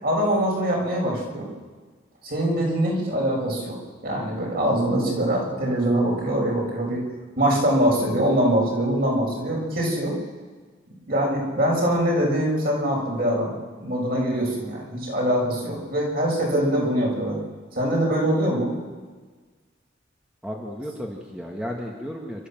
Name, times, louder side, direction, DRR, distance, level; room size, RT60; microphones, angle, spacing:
voice 1, 0.0-1.5 2.2-3.8 4.0-7.0 7.4-10.1 11.1-13.5 13.8-17.4 17.7-18.7, right 1 dB, 50° right, -2 dB, 6.4 m, -23 dB
voice 2, 20.4-22.5, equal, 5° right, -1 dB, 1.9 m, -33 dB
28.5 x 13.0 x 7.6 m, 1.4 s
head